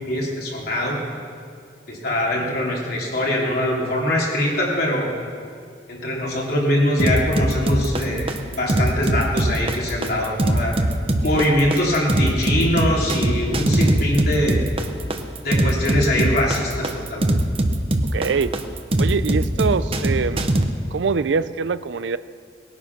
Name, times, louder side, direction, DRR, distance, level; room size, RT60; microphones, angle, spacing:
voice 1, 0.1-1.0 1.9-5.1 5.9-8.3 8.6-10.8 11.2-14.6 15.4-17.2, left 1 dB, 60° left, -3 dB, 3.1 m, -22 dB
sound 1, 7.0-20.6, right 1 dB, 30° right, 0.9 m, -21 dB
voice 2, 18.1-18.5 19.0-20.5 20.9-22.2, right 5 dB, 80° right, 15 dB, 0.5 m, -23 dB
19.0 x 9.6 x 5.9 m, 2.2 s
head